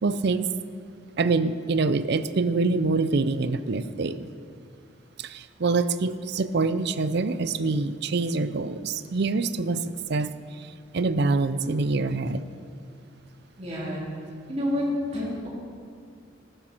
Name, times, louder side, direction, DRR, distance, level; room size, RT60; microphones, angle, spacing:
voice 1, 0.0-0.5 1.2-4.3 5.2-12.4, right 3 dB, 55° right, 0.5 m, -25 dB
voice 2, 13.6-14.0 14.5-15.5, left 1 dB, 35° right, 3.4 m, -28 dB
14.5 x 12.0 x 4.5 m
head